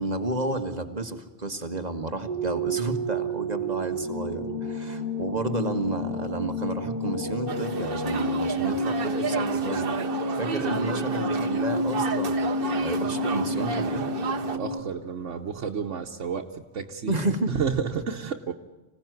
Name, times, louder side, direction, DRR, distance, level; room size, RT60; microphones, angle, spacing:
voice 1, 0.0-9.9 10.4-12.4 12.8-14.1 17.1-17.5, right 2 dB, 35° right, 7 dB, 1.9 m, -31 dB
sound 1, 2.3-14.8, equal, 15° right, 3.7 m, -30 dB
sound 2, 7.5-14.6, right 5 dB, 50° right, 1.2 m, -32 dB
voice 2, 14.5-16.5 16.7-17.2 17.5-18.5, right 6 dB, 90° right, 2 dB, 1.5 m, -30 dB
26.0 x 17.0 x 9.4 m, 1.2 s
omnidirectional pair, 1.2 m